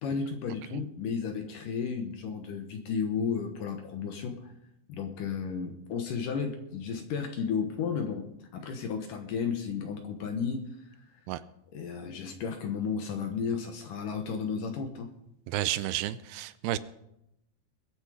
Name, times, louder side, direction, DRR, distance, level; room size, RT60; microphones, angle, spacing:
voice 1, 0.0-4.5 4.9-11.0 11.7-15.1, left 6 dB, 65° left, 5 dB, 2.3 m, -33 dB
voice 2, 15.5-16.8, right 14 dB, 80° right, 14 dB, 2.6 m, -31 dB
22.0 x 8.2 x 5.0 m, 0.82 s
omnidirectional pair, 4.8 m